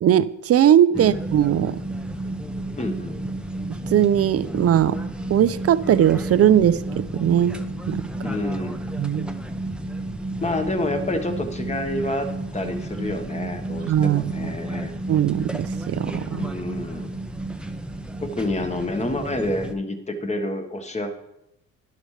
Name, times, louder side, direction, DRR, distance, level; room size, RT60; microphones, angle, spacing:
voice 1, 0.0-1.8 3.9-5.0 5.3-7.6 7.9-8.0 9.0-9.3 13.9-14.3 15.1-16.5, right 10 dB, 50° right, 16 dB, 0.5 m, -19 dB
sound 1, 0.9-19.7, right 1 dB, 5° right, 0.8 m, -32 dB
voice 2, 2.8-3.2 8.2-8.8 10.4-14.9 16.3-17.1 18.2-21.1, left 1 dB, 20° left, 6 dB, 1.4 m, -28 dB
11.5 x 11.0 x 3.3 m, 0.84 s
cardioid pair, 90°, 30 cm